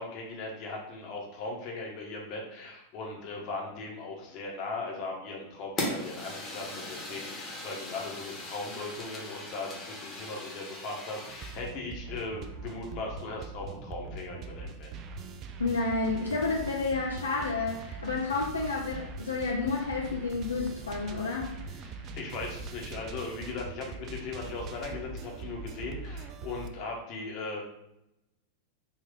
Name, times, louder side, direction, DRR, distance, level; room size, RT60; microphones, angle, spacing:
voice 1, 0.0-14.9 21.8-27.6, left 3 dB, 40° left, -1 dB, 1.0 m, -38 dB
Fire, 5.8-11.7, left 1 dB, 20° left, 1.1 m, -39 dB
sound 1, 11.2-26.7, right 4 dB, 35° right, 0.3 m, -42 dB
voice 2, 15.6-21.5, left 3 dB, 70° left, -2 dB, 0.4 m, -30 dB
3.6 x 2.6 x 3.6 m, 0.85 s
figure-of-eight pair, 90°, 0 cm